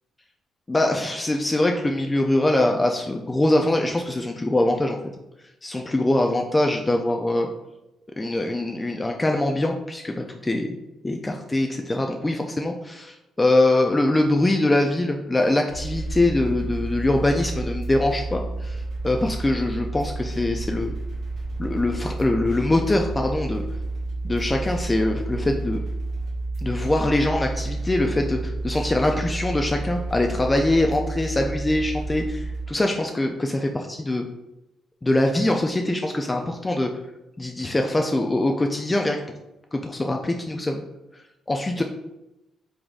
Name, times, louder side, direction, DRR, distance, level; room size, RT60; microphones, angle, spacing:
voice 1, 0.7-5.0 5.6-7.5 8.2-10.8 11.0-20.9 21.6-23.6 24.2-25.8 26.6-34.2 35.0-36.9 37.4-39.2 39.7-40.8 41.5-41.8, left 1 dB, 20° left, 2 dB, 0.3 m, -23 dB
sound 1, 15.7-32.6, right 2 dB, 80° right, 1.5 m, -30 dB
3.8 x 3.3 x 2.4 m, 0.94 s
cardioid pair, 90°, 0 cm